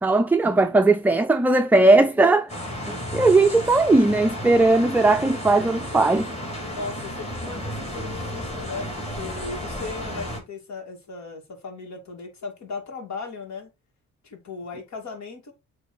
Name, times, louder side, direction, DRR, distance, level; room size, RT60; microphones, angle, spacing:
voice 1, 0.0-2.5 3.1-6.3, right 2 dB, 5° right, 0.5 m, -18 dB
sound 1, 2.5-10.4, equal, 20° left, 3.1 m, -33 dB
voice 2, 6.7-13.7 14.2-15.5, left 4 dB, 65° left, 2.6 m, -37 dB
8.0 x 3.4 x 4.3 m
cardioid pair, 90°, 30 cm